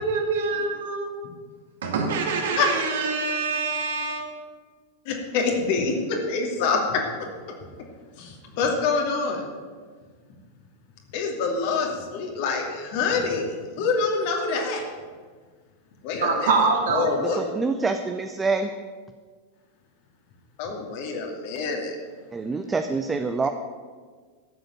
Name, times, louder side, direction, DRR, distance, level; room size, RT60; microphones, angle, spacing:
voice 1, 0.0-1.1 1.8-4.3 16.2-17.1, right 4 dB, 60° right, 2 dB, 2.5 m, -25 dB
voice 2, 5.1-7.0 8.2-9.5 11.1-14.8 16.0-16.5 16.9-17.4 20.6-22.0, left 4 dB, 50° left, 1 dB, 2.7 m, -26 dB
voice 3, 17.2-18.7 22.3-23.5, right 4 dB, 15° right, 7 dB, 0.7 m, -26 dB
13.0 x 7.9 x 7.4 m, 1.5 s
figure-of-eight pair, 90°, 0 cm